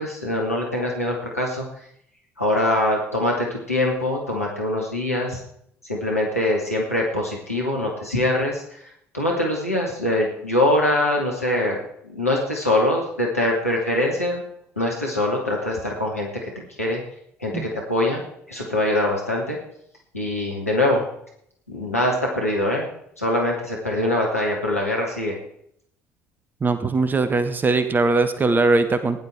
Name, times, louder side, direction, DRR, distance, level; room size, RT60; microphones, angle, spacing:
voice 1, 0.0-1.6 2.4-5.4 5.8-11.8 12.0-14.4 14.8-16.5 16.8-17.0 17.4-18.2 18.5-19.6 20.1-21.0 21.7-22.9 23.2-25.4, left 1 dB, 85° left, -2 dB, 2.6 m, -23 dB
voice 2, 26.6-29.2, right 3 dB, 25° right, 11 dB, 1.3 m, -20 dB
15.5 x 10.5 x 4.6 m, 0.70 s
figure-of-eight pair, 55°, 8 cm